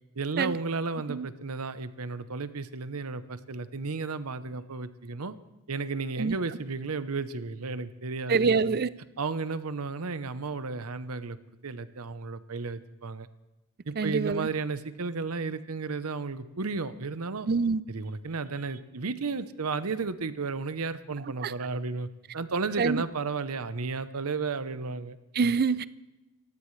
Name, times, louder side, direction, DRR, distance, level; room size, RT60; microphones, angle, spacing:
voice 1, 0.2-5.4 5.7-8.8 9.2-11.4 11.6-13.3 13.9-17.5 17.9-25.2, right 4 dB, 90° right, 0.8 m, -33 dB
voice 2, 8.3-8.9 14.0-14.5 17.5-17.8 21.4-21.5 22.8-23.0 25.3-25.9, right 5 dB, 45° right, 0.5 m, -25 dB
28.0 x 15.5 x 3.2 m
head